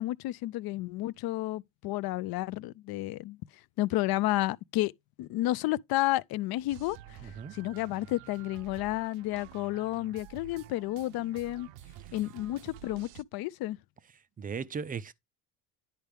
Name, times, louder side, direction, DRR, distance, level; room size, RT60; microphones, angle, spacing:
voice 1, 0.0-3.4 3.8-4.9 5.2-7.0 7.5-11.7 12.1-13.8, left 16 dB, 55° left, 0.5 m, -31 dB
sound 1, 6.7-13.2, right 13 dB, 80° right, 0.7 m, -50 dB
voice 2, 7.2-7.5 14.4-15.1, right 6 dB, 20° right, 0.3 m, -37 dB
10.5 x 4.5 x 3.4 m
cardioid pair, 110°, 48 cm